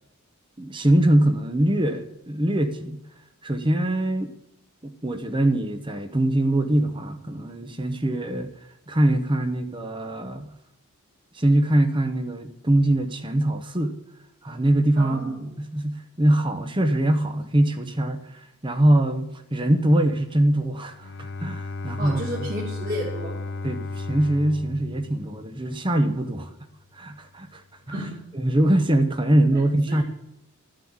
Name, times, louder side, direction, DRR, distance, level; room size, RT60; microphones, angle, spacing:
voice 1, 0.6-3.0 3.4-4.3 4.8-8.5 8.9-10.5 11.3-13.9 14.4-22.5 23.6-26.5 26.9-27.6 27.9-28.0 28.3-30.0, right 1 dB, 20° right, 0.9 m, -23 dB
voice 2, 15.0-15.5 22.0-23.4 27.9-28.2 29.5-29.6 29.9-30.0, equal, 40° right, 2.5 m, -32 dB
Bowed string instrument, 20.9-25.9, left 3 dB, 50° left, 0.6 m, -34 dB
13.0 x 7.6 x 8.7 m
head